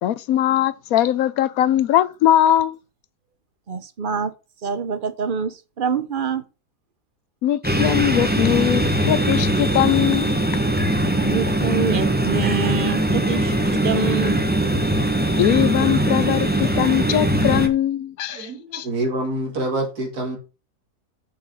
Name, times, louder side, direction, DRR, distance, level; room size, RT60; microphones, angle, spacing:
voice 1, 0.0-2.8 7.4-10.4 15.4-18.9, left 11 dB, 70° left, 1.0 m, -20 dB
voice 2, 3.7-4.3 4.6-6.4 11.2-14.4, right 5 dB, 45° right, 0.7 m, -26 dB
sound 1, 7.6-17.7, right 1 dB, 5° right, 0.9 m, -21 dB
voice 3, 18.3-20.4, right 2 dB, 70° right, 3.3 m, -26 dB
6.9 x 5.5 x 6.4 m
omnidirectional pair, 1.7 m